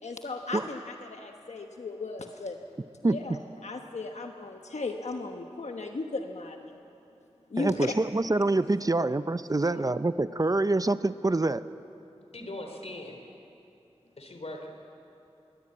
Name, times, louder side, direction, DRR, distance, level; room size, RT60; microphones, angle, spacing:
voice 1, 0.0-2.6 3.0-6.8 7.5-7.9, left 3 dB, 85° left, 3 dB, 1.2 m, -36 dB
voice 2, 7.6-11.6, right 2 dB, 30° right, 13 dB, 0.6 m, -26 dB
voice 3, 12.3-13.2 14.2-14.7, left 1 dB, 70° left, 4 dB, 3.4 m, -40 dB
22.5 x 19.5 x 8.7 m, 3.0 s
wide cardioid pair, 65°, 11 cm